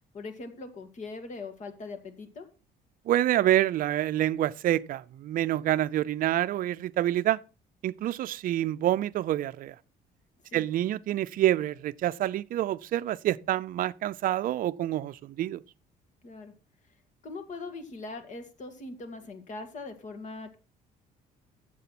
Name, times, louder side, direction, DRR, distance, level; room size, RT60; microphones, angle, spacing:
voice 1, 0.1-2.5 10.5-10.7 16.2-16.5 17.2-20.6, left 3 dB, 45° left, 2.1 m, -41 dB
voice 2, 3.1-7.4 7.8-9.7 10.5-15.6, right 13 dB, 55° right, 0.5 m, -27 dB
8.3 x 7.5 x 5.9 m
cardioid pair, 110°, 17 cm